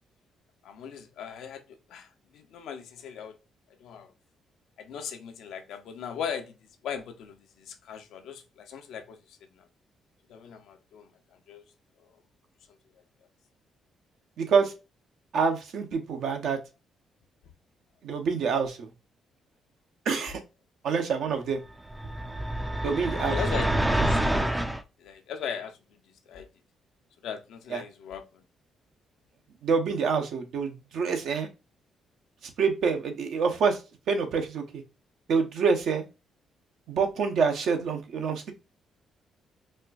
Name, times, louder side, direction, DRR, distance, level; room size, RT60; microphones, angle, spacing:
voice 1, 0.6-1.6 1.9-3.4 3.8-4.1 4.8-6.5 6.8-9.7 10.3-11.6 12.0-12.1 23.1-24.2 25.0-25.8 26.1-26.5 27.2-28.4, left 7 dB, 80° left, 0.7 m, -39 dB
voice 2, 14.4-14.7 15.3-16.6 18.0-18.9 20.0-20.4 20.8-21.6 22.8-23.4 27.7-27.8 29.6-31.5 32.6-33.8 34.1-34.8 35.3-36.1 36.9-38.5, right 5 dB, 70° right, 0.8 m, -26 dB
sound 1, 21.9-24.8, right 1 dB, 10° right, 0.4 m, -27 dB
4.2 x 2.3 x 2.4 m
cardioid pair, 90°, 0 cm